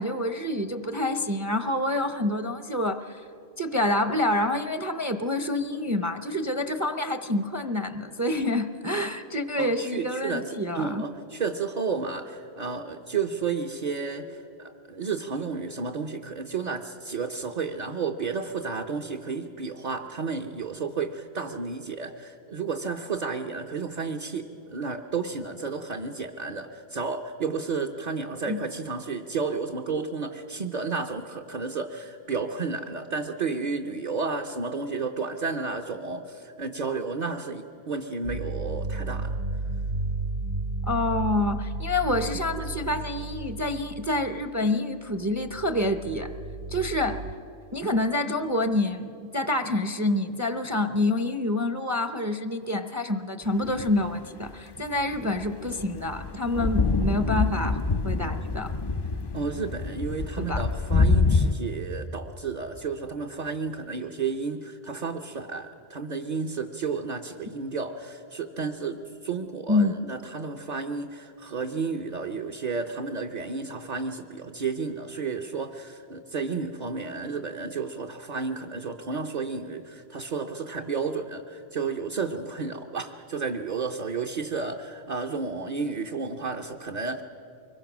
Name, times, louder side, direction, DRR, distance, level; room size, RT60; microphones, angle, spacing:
voice 1, 0.0-3.2 3.6-11.1 28.5-28.6 40.9-46.3 46.7-47.2 47.7-58.7 60.4-60.6 69.7-69.9, left 1 dB, 20° right, 9 dB, 0.6 m, -27 dB
voice 2, 9.6-39.4 59.3-87.2, right 4 dB, 45° right, 2 dB, 0.9 m, -32 dB
sound 1, 38.2-44.6 45.1-47.3, right 3 dB, 65° right, 2.3 m, -33 dB
sound 2, 53.7-54.2 55.1-61.5, left 3 dB, 35° left, 0.4 m, -26 dB
24.5 x 22.0 x 6.1 m, 2.7 s
omnidirectional pair, 1.1 m